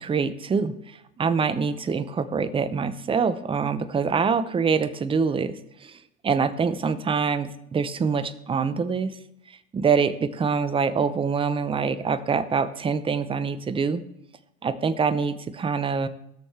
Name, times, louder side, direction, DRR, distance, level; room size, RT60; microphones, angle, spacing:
voice 1, 0.0-6.0 6.2-9.1 9.5-14.0 14.6-16.1, right 5 dB, 10° right, 13 dB, 0.5 m, -25 dB
17.0 x 6.3 x 3.4 m, 0.80 s
hypercardioid pair, 85°, 46 cm